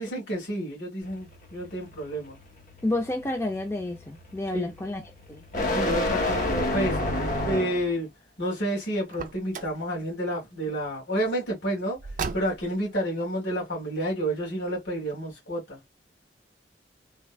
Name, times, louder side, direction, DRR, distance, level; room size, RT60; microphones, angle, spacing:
voice 1, 0.0-2.4 4.5-4.7 5.7-7.0 7.4-8.1 8.4-12.0 12.3-15.8, right 1 dB, 85° left, 1.8 m, -30 dB
sound 1, 1.0-8.0, left 1 dB, 45° left, 1.1 m, -30 dB
voice 2, 2.8-5.0 5.3-5.4, left 2 dB, 15° left, 0.4 m, -30 dB
Car, 9.1-9.8 12.0-12.8, right 5 dB, 45° right, 0.4 m, -35 dB
3.4 x 2.2 x 2.2 m
head